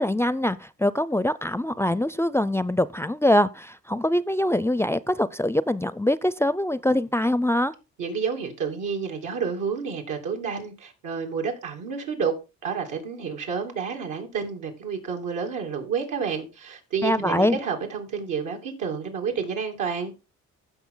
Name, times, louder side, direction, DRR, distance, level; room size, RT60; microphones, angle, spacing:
voice 1, 0.0-7.7 17.0-17.6, left 1 dB, 10° left, 0.4 m, -23 dB
voice 2, 8.0-12.3 12.6-20.1, right 6 dB, 85° right, 3.0 m, -30 dB
15.5 x 5.8 x 3.9 m
cardioid pair, 90°, 30 cm